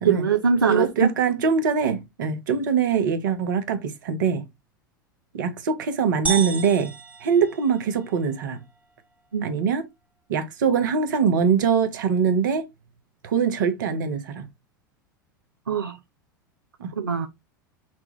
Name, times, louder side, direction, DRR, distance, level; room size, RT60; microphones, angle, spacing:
voice 1, 0.0-1.1 9.3-9.5 15.7-16.0 17.0-17.3, right 6 dB, 85° right, 0.5 m, -22 dB
voice 2, 0.7-4.4 5.3-6.9 7.2-8.6 9.4-9.8 10.3-12.6 13.2-14.5 16.8-16.9, right 6 dB, 65° right, 1.0 m, -23 dB
sound 1, 6.3-8.2, right 5 dB, 15° right, 0.8 m, -32 dB
5.9 x 2.3 x 3.1 m
figure-of-eight pair, 85°, 11 cm